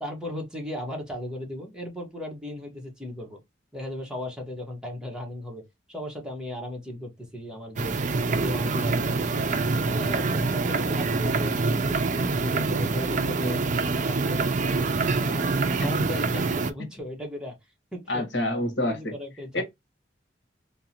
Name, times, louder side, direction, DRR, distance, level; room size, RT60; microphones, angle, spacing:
voice 1, 0.0-3.4 3.7-8.0 8.3-9.5 9.9-13.6 14.1-14.5 14.9-15.5 15.8-17.6 17.9-18.3 18.8-19.6, left 1 dB, 5° right, 1.2 m, -36 dB
sound 1, 7.8-16.7, right 3 dB, 45° right, 0.5 m, -25 dB
voice 2, 18.1-19.1 19.5-19.6, left 1 dB, 80° left, 1.4 m, -27 dB
3.8 x 2.9 x 2.8 m
head